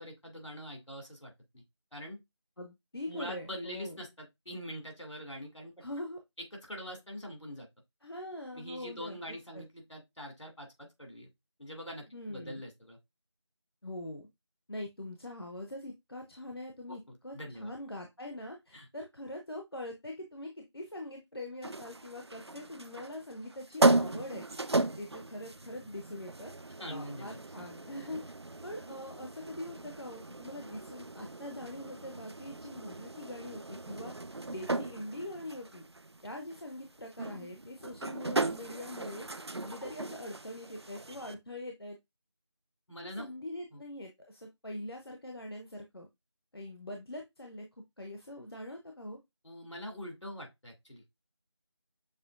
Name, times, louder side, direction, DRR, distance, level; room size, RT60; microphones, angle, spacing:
voice 1, 0.0-1.6 1.9-2.2 3.1-5.7 6.5-7.7 8.5-11.3 11.6-13.0 16.9-17.7 18.7-18.9 26.8-27.4 42.9-43.3 43.7-43.8 49.4-51.2, equal, 80° left, 2.4 m, -44 dB
voice 2, 2.6-4.0 5.8-6.2 8.0-9.6 12.1-12.6 13.8-14.3 14.7-24.5 25.0-26.5 26.8-28.3 28.6-34.1 34.5-35.8 36.2-39.3 39.6-42.0 43.0-46.1 46.5-47.7 48.0-49.2, left 1 dB, 55° left, 0.7 m, -43 dB
sound 1, 21.6-41.3, right 2 dB, 65° right, 0.4 m, -36 dB
6.6 x 2.9 x 2.4 m
figure-of-eight pair, 180°, 15 cm